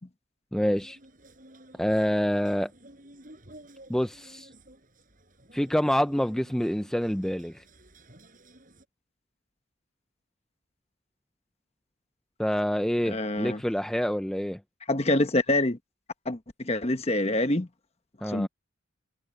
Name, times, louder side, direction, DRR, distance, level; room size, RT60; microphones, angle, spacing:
voice 1, 0.5-1.0 1.8-2.7 3.9-4.5 5.5-7.6 12.4-14.6 18.2-18.5, equal, 5° left, 0.5 m, -27 dB
sound 1, 0.7-8.9, right 1 dB, 40° right, 6.8 m, -53 dB
voice 2, 13.1-13.6 14.9-15.8 16.3-17.7 18.2-18.5, left 2 dB, 30° left, 1.1 m, -26 dB
head